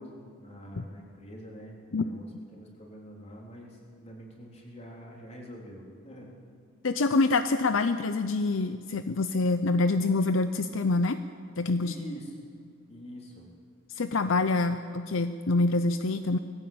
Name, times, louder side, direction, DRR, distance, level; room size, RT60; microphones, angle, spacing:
voice 1, 0.0-6.4 11.8-12.3 12.9-13.5, equal, 30° left, -1 dB, 3.8 m, -45 dB
voice 2, 6.8-11.2 11.6-11.9 13.9-16.4, left 3 dB, 70° left, 10 dB, 0.7 m, -26 dB
19.5 x 15.5 x 8.7 m, 2.3 s
head